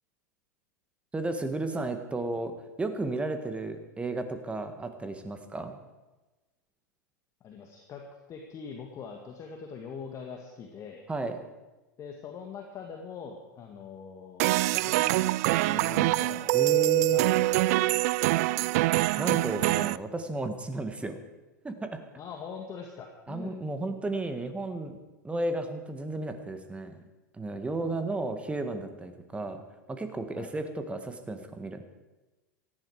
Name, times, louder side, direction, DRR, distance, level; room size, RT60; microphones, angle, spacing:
voice 1, 1.1-5.8 11.1-11.4 16.5-17.2 19.2-21.2 21.6-22.0 23.3-25.0 25.2-27.0 27.3-29.6 29.9-31.9, right 2 dB, 10° right, 8 dB, 1.7 m, -33 dB
voice 2, 7.4-11.0 12.0-17.2 17.6-17.9 22.2-23.5 27.8-28.1 30.4-30.5, left 6 dB, 35° left, 2 dB, 1.9 m, -43 dB
sound 1, 14.4-20.0, right 18 dB, 55° right, 0.4 m, -24 dB
18.0 x 14.0 x 4.9 m, 1.1 s
figure-of-eight pair, 90°, 10 cm